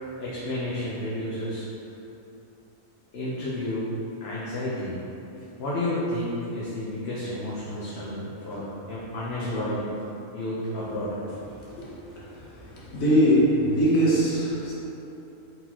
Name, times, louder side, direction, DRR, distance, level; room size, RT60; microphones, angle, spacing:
voice 1, 0.0-1.6 3.1-3.9 4.2-4.9 5.6-9.9 10.3-11.2 11.8-11.9, left 1 dB, 55° left, -8 dB, 0.9 m, -31 dB
voice 2, 12.3-14.7, equal, 75° left, -7 dB, 1.4 m, -22 dB
4.5 x 4.0 x 2.8 m, 2.9 s
omnidirectional pair, 1.4 m